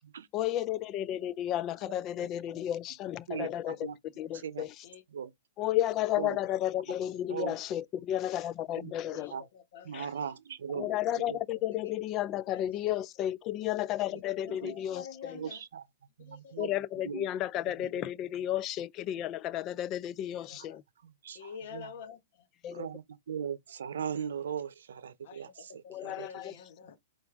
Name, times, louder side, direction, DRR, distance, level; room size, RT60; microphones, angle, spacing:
voice 1, 0.3-3.8 4.2-4.7 5.6-9.3 9.9-10.1 10.7-15.4 16.6-20.8 22.6-22.9 25.9-26.5, left 12 dB, 30° left, 0.4 m, -33 dB
voice 2, 2.2-2.6 3.3-4.0 4.3-4.7 5.1-5.3 6.2-6.4 6.7-6.8 7.3-7.6 8.8-9.4 9.8-10.9 11.3-11.4 14.5-14.7 15.3-15.9 16.2-16.7 17.0-17.3 17.7-18.1 20.5-20.6 21.0-21.9 22.7-26.3, right 8 dB, 80° right, 0.7 m, -39 dB
voice 3, 3.3-3.9 4.2-4.4 4.8-5.0 7.1-7.4 9.1-10.1 12.5-12.9 14.1-15.6 16.2-16.7 20.2-20.8 21.3-22.5 25.2-27.0, left 7 dB, 60° left, 1.2 m, -49 dB
4.8 x 2.5 x 3.5 m
hypercardioid pair, 140°, 0 cm